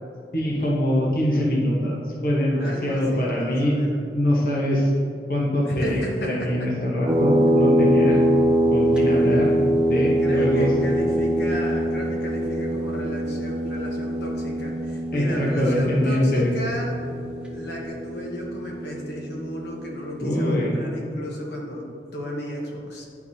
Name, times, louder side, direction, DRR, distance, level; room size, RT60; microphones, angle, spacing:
voice 1, 0.3-3.8 4.1-4.9 5.3-8.2 8.7-9.5 9.9-10.7 15.1-16.5 20.2-20.7, left 1 dB, 55° left, -4 dB, 1.0 m, -23 dB
voice 2, 2.6-4.0 5.6-6.7 10.2-16.9 17.5-23.1, equal, 75° left, -2 dB, 1.1 m, -34 dB
sound 1, 7.1-20.2, equal, 5° right, 0.5 m, -23 dB
10.5 x 4.6 x 2.8 m, 2.6 s
head